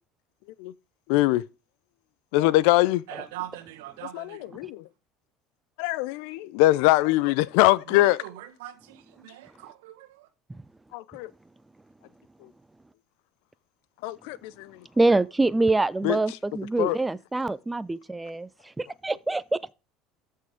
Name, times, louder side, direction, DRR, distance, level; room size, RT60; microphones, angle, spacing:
voice 1, 1.1-1.4 2.3-3.0 4.1-4.8 5.8-8.2 10.9-11.3 14.0-14.7 16.0-16.2 16.8-17.0, left 17 dB, 65° left, 0.6 m, -22 dB
voice 2, 3.1-4.7 7.9-10.3, right 13 dB, 70° right, 1.5 m, -42 dB
voice 3, 15.0-19.7, right 2 dB, 10° right, 0.7 m, -25 dB
13.5 x 6.5 x 3.6 m
hypercardioid pair, 70°, 0 cm